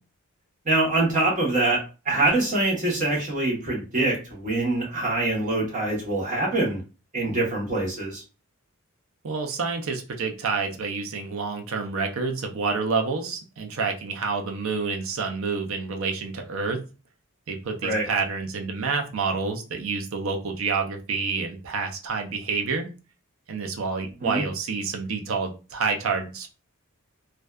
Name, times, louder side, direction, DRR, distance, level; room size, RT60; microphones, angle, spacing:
voice 1, 0.6-6.8 7.1-8.2 17.8-18.1 24.2-24.4, right 2 dB, 35° right, -3 dB, 0.9 m, -24 dB
voice 2, 9.2-16.8 17.5-22.9 23.5-26.5, right 4 dB, 60° right, 4 dB, 0.5 m, -28 dB
2.5 x 2.2 x 2.2 m, 0.33 s
head